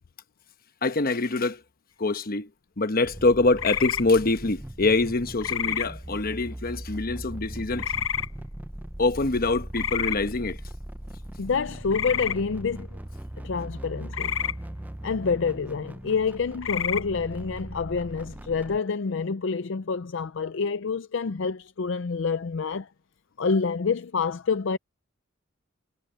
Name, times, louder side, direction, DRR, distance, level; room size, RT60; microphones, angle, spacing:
voice 1, 0.8-1.6 2.0-2.5 2.8-7.9 9.0-10.6, left 3 dB, 45° left, 1.0 m, -24 dB
sound 1, 3.0-18.8, right 1 dB, 10° right, 0.5 m, -39 dB
sound 2, 3.6-4.0 5.4-5.9 7.8-8.3 9.7-10.2 11.9-12.4 14.1-14.5 16.6-17.0, left 9 dB, 90° left, 0.8 m, -28 dB
voice 2, 11.4-13.0 13.4-14.4 15.0-22.9 23.4-24.8, left 5 dB, 65° left, 0.5 m, -27 dB
head